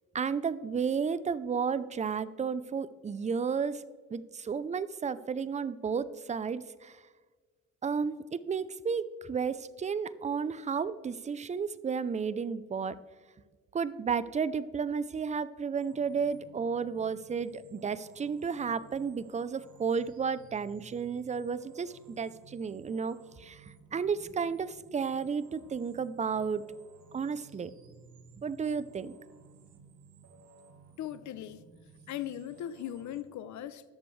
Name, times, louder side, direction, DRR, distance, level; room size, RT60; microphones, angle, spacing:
voice 1, 0.1-3.8 4.1-7.0 7.8-13.0 13.7-26.6 27.1-27.7 28.4-29.2, right 6 dB, 25° right, 16 dB, 0.5 m, -32 dB
sound 1, 15.8-33.2, right 5 dB, 75° right, 1.4 m, -57 dB
voice 2, 31.0-31.6 32.1-33.8, left 11 dB, 70° left, 14 dB, 0.6 m, -39 dB
20.0 x 6.8 x 3.2 m, 1.5 s
cardioid pair, 90°, 30 cm